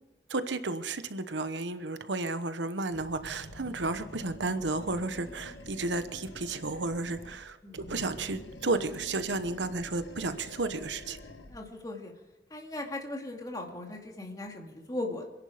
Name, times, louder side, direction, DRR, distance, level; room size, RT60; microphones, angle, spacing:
voice 1, 0.3-11.2, right 3 dB, 85° right, 11 dB, 1.0 m, -33 dB
Animal, 2.9-7.4 7.7-11.6, left 1 dB, 85° left, 1.7 m, -47 dB
voice 2, 11.5-12.1 12.5-15.2, left 2 dB, 20° left, 1 dB, 2.4 m, -38 dB
26.5 x 11.0 x 5.1 m, 1.1 s
head